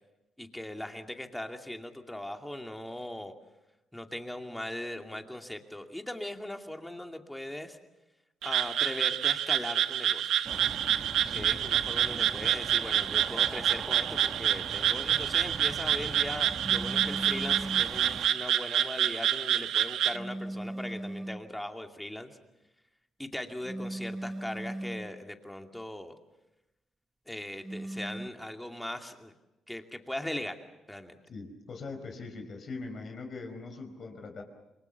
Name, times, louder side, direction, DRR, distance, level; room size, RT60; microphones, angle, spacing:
voice 1, 0.4-3.3 3.9-7.8 8.4-10.3 11.3-22.3 23.2-26.1 27.3-29.3 29.7-30.6 30.9-31.2, left 1 dB, 5° left, 4 dB, 2.5 m, -39 dB
Frog, 8.4-20.2, right 10 dB, 80° right, 0.9 m, -28 dB
sound 1, 10.4-18.3, right 4 dB, 35° right, 1.2 m, -42 dB
voice 2, 11.2-11.6 31.3-34.4, left 3 dB, 50° left, 5 dB, 4.7 m, -41 dB
sound 2, 16.6-18.0 20.1-21.5 23.6-25.2 27.6-28.3, right 1 dB, 15° right, 0.9 m, -38 dB
28.0 x 22.0 x 7.1 m, 0.97 s
cardioid pair, 90°, 0 cm